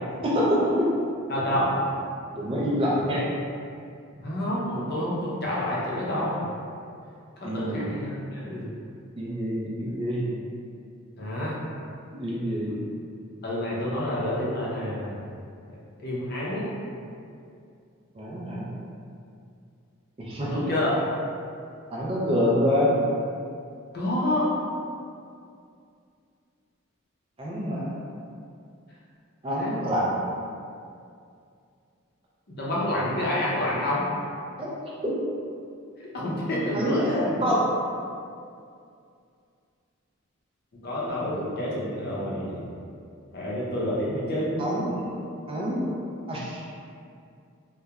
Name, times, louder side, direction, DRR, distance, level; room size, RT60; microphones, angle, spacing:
voice 1, 0.2-0.8 2.3-3.2 7.4-7.9 9.2-10.3 12.1-12.8 18.2-18.7 20.2-20.7 21.9-22.9 27.4-27.9 29.4-30.2 34.6-34.7 35.0-35.1 36.7-37.6 41.0-41.4 44.6-45.1 45.5-45.9 46.3-46.6, equal, 25° right, -6 dB, 0.3 m, -26 dB
voice 2, 1.3-1.7 4.2-6.5 7.4-8.7 11.2-11.6 12.7-12.8 13.4-15.2 15.7-16.7 20.5-21.0 23.9-24.5 29.6-29.7 32.5-34.1 36.0-37.3 40.8-42.8 43.3-44.6, left 1 dB, 50° left, -6 dB, 0.5 m, -28 dB
2.8 x 2.1 x 2.3 m, 2.4 s
head